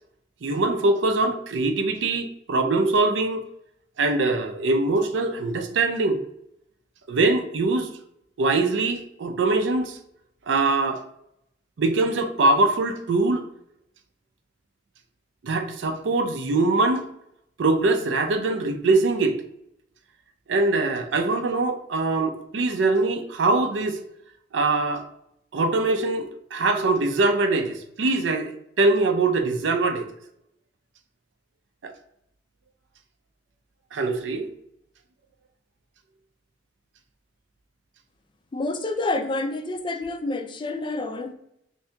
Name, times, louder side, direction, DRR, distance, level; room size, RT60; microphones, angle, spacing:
voice 1, 0.4-3.4 4.0-6.2 7.1-7.9 8.4-10.0 10.5-11.0 11.8-13.5 15.4-17.0 17.6-19.4 20.5-24.0 24.5-25.0 25.5-30.1 31.8-31.9 33.9-34.5, right 3 dB, 80° right, 7 dB, 0.5 m, -23 dB
voice 2, 38.5-41.3, left 2 dB, 25° left, 7 dB, 0.3 m, -28 dB
2.7 x 2.7 x 3.3 m, 0.78 s
head